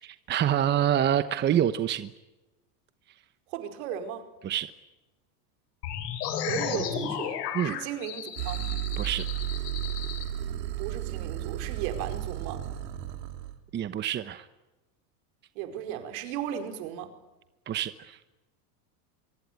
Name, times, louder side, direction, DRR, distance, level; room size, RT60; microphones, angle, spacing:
voice 1, 0.0-2.1 4.4-4.7 7.5-7.7 9.0-9.2 13.7-14.5 17.7-18.2, right 10 dB, 20° right, 12 dB, 0.9 m, -26 dB
voice 2, 3.5-4.2 6.3-8.6 10.8-12.6 15.5-17.1, right 9 dB, 60° right, 7 dB, 5.0 m, -36 dB
sound 1, 5.8-10.2, left 9 dB, 80° left, 6.8 m, -34 dB
sound 2, 8.4-13.6, right 13 dB, 80° right, 3.8 m, -33 dB
24.0 x 24.0 x 9.5 m, 1.1 s
supercardioid pair, 145°, 47 cm